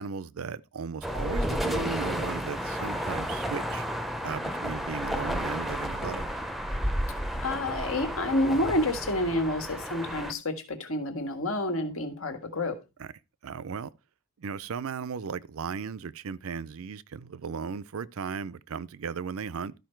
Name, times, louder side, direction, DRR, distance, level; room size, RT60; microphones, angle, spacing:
voice 1, 0.0-3.9 4.2-6.4 13.0-13.1 13.4-13.9 14.4-19.7, right 6 dB, 70° right, 0.5 m, -36 dB
sound 1, 1.0-10.3, equal, ahead, 0.6 m, -32 dB
voice 2, 7.4-12.8, left 1 dB, 65° left, 1.7 m, -29 dB
12.5 x 5.1 x 4.5 m
head